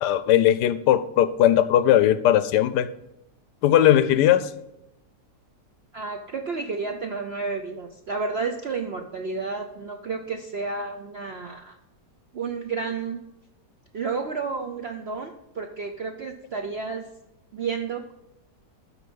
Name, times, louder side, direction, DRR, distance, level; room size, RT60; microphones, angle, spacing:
voice 1, 0.0-2.9 3.6-4.5, left 11 dB, 75° left, 14 dB, 1.1 m, -19 dB
voice 2, 5.9-11.8 12.3-13.2 13.9-17.0 17.5-18.1, right 4 dB, 60° right, 4 dB, 0.6 m, -31 dB
13.0 x 4.5 x 5.2 m, 0.91 s
omnidirectional pair, 1.9 m